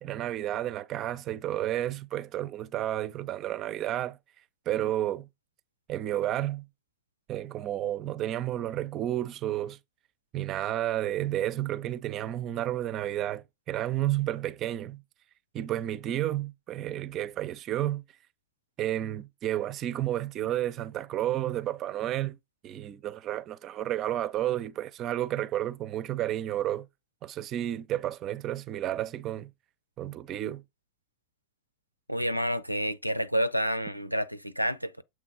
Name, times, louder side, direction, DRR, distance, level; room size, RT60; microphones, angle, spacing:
voice 1, 0.0-4.2 4.7-5.3 5.9-6.7 7.3-9.8 10.3-15.0 15.5-18.0 18.8-22.4 22.6-26.9 27.2-29.5 30.0-30.6, right 13 dB, 35° right, 0.6 m, -31 dB
voice 2, 32.1-35.0, equal, 90° right, 0.5 m, -29 dB
7.6 x 3.3 x 4.7 m
figure-of-eight pair, 90°, 0 cm